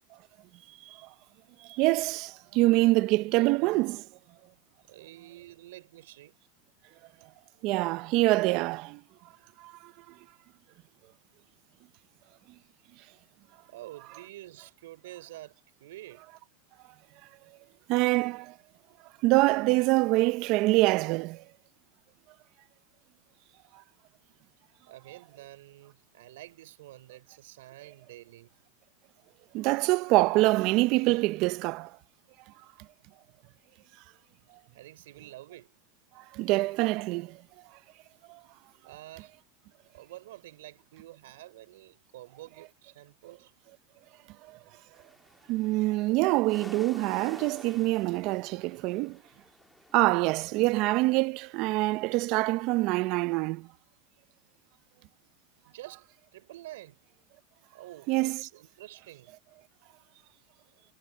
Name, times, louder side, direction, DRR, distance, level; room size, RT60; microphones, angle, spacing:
voice 1, 1.6-4.1 7.6-9.0 9.6-9.9 17.9-18.5 19.2-21.4 29.5-31.9 36.2-37.4 38.3-38.4 44.5-44.6 45.5-49.2 49.9-53.7 58.1-58.4, right 20 dB, 45° right, 0.6 m, -25 dB
voice 2, 4.9-6.4 13.7-16.3 24.9-28.6 34.7-35.8 38.8-39.3 39.9-43.5 46.5-46.6 55.6-57.0 57.7-59.3, right 16 dB, 75° right, 4.8 m, -48 dB
sound 1, 44.9-52.0, left 1 dB, 5° left, 1.7 m, -52 dB
supercardioid pair, 145°, 0 cm